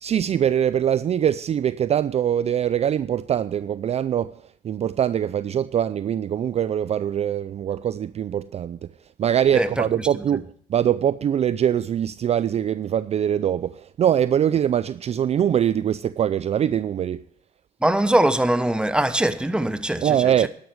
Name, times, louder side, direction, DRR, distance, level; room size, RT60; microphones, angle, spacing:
voice 1, 0.0-4.3 4.6-8.8 9.2-17.2 20.0-20.5, right 9 dB, 40° right, 0.4 m, -23 dB
voice 2, 9.5-9.9 10.2-10.3 17.8-20.5, right 1 dB, 5° right, 1.1 m, -22 dB
12.5 x 11.5 x 4.6 m
cardioid pair, 110°, 17 cm